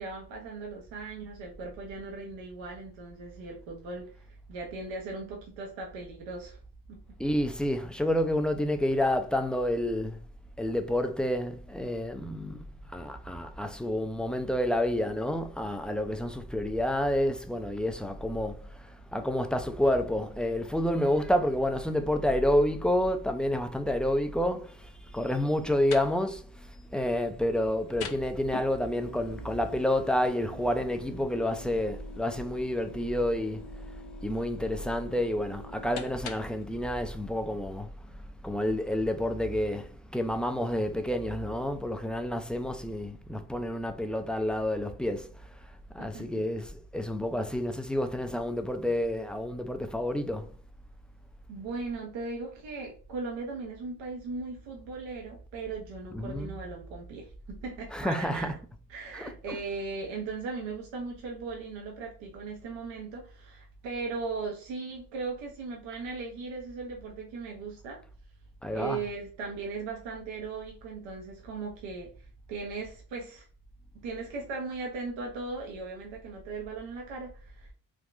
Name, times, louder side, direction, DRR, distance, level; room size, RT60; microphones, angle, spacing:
voice 1, 0.0-6.6 6.9-7.0 46.1-46.4 51.5-58.6 58.9-68.0 68.7-73.5 74.0-77.7, right 4 dB, 80° right, 0.8 m, -38 dB
voice 2, 7.2-10.2 10.6-33.7 34.2-45.6 45.9-50.5 56.1-56.5 57.9-58.5 59.1-59.6 68.6-69.0, left 1 dB, ahead, 0.4 m, -29 dB
sound 1, 25.5-36.7, left 4 dB, 55° left, 0.6 m, -46 dB
3.5 x 2.2 x 2.5 m
hypercardioid pair, 45°, 45 cm